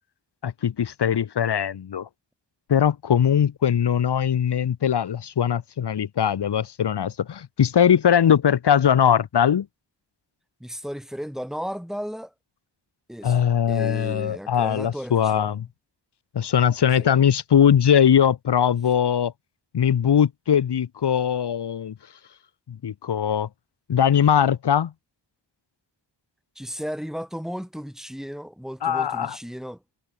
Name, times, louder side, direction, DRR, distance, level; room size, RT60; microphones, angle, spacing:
voice 1, 0.4-2.1 2.7-9.7 13.2-15.7 16.3-19.3 19.7-21.9 22.7-23.5 23.9-24.9 28.8-29.4, left 8 dB, 65° left, 1.2 m, -21 dB
voice 2, 10.6-12.3 13.1-15.6 17.0-17.1 26.6-29.8, equal, ahead, 5.9 m, -35 dB
wide cardioid pair, 135°, 45 cm